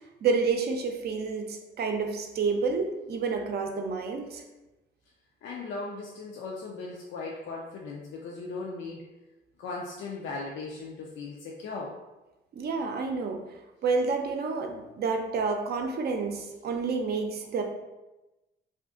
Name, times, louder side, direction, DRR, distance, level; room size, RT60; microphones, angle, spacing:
voice 1, 0.2-4.4 12.5-13.4 13.8-17.6, right 4 dB, 55° right, 4 dB, 0.5 m, -29 dB
voice 2, 5.4-9.1 9.6-12.0, left 3 dB, 75° left, -2 dB, 0.5 m, -38 dB
2.5 x 2.4 x 3.6 m, 1.0 s
cardioid pair, 90°, 20 cm